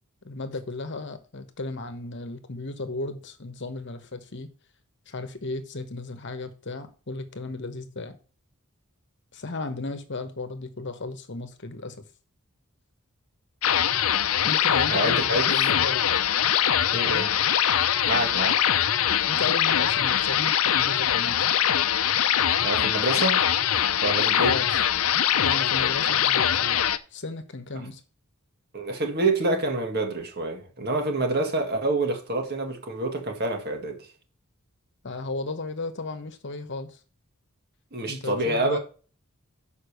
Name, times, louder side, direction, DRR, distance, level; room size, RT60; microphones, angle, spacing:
voice 1, 0.2-4.5 5.1-8.2 9.3-12.1 14.4-16.2 17.0-17.3 19.3-21.4 24.5-24.7 25.4-26.8 27.1-28.0 35.0-37.0 38.0-38.8, left 3 dB, 55° left, 1.1 m, -34 dB
sound 1, 13.6-27.0, left 10 dB, 70° left, 0.6 m, -23 dB
voice 2, 14.9-15.5 16.9-17.3 18.1-18.6 22.6-23.4 24.0-24.5 28.7-34.1 37.9-38.8, right 2 dB, 45° right, 1.9 m, -27 dB
6.7 x 5.4 x 6.6 m
head